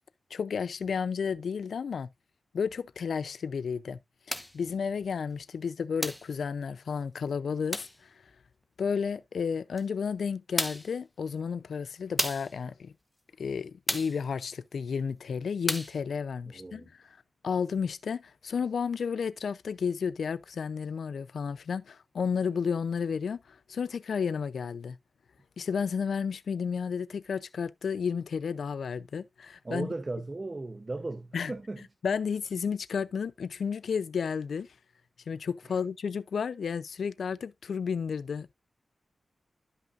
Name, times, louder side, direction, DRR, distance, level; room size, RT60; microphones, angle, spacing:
voice 1, 0.3-2.1 2.5-4.0 4.5-7.9 8.8-12.9 13.4-16.8 17.4-25.0 25.6-29.9 31.3-31.5 32.0-34.7 35.3-38.5, left 6 dB, 80° left, 0.5 m, -32 dB
sound 1, 4.3-4.6 6.0-6.3 7.7-8.0 9.8-9.9 10.6-10.9 12.2-12.5 13.9-14.2 15.7-16.0, left 1 dB, 5° left, 0.9 m, -32 dB
voice 2, 16.5-16.9 29.6-31.8 35.6-35.8, right 2 dB, 30° right, 0.7 m, -37 dB
12.5 x 5.6 x 2.5 m
wide cardioid pair, 100°, 0 cm